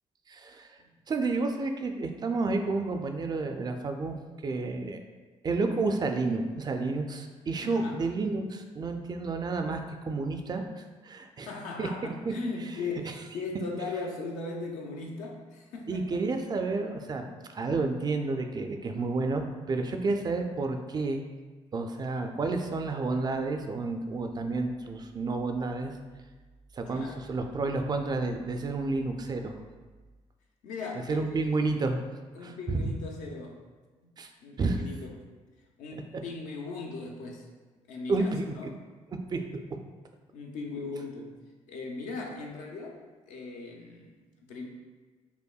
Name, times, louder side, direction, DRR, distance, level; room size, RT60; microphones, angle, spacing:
voice 1, 0.3-0.7 1.1-4.2 4.4-5.0 5.4-11.5 11.8-11.9 15.9-21.2 21.7-25.9 26.7-29.6 31.1-32.1 32.4-32.9 34.2-34.3 34.6-34.8 35.9-36.0 38.1-38.5 39.3-39.4, right 3 dB, 35° right, 5 dB, 0.3 m, -30 dB
voice 2, 7.6-8.0 11.5-16.2 26.9-27.3 30.6-31.5 32.3-33.6 34.4-35.3 35.8-37.5 37.9-38.8 40.3-41.4 41.7-43.0 43.3-44.1 44.5-44.7, left 3 dB, 80° left, 0 dB, 0.6 m, -38 dB
5.4 x 2.1 x 2.3 m, 1.3 s
cardioid pair, 85°, 13 cm